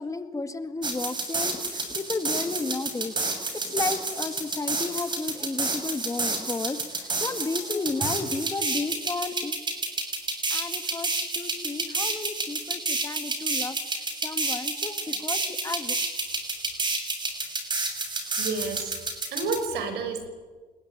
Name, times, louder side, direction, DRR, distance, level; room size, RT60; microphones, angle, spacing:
voice 1, 0.0-9.5 10.5-13.8 14.2-16.0, left 3 dB, 20° left, 9 dB, 2.0 m, -33 dB
sound 1, 0.8-19.6, right 3 dB, 25° right, 6.7 m, -30 dB
voice 2, 18.4-19.0 19.3-20.3, right 4 dB, 80° right, 8 dB, 5.5 m, -30 dB
28.0 x 21.5 x 9.0 m, 1.5 s
cardioid pair, 110°, 17 cm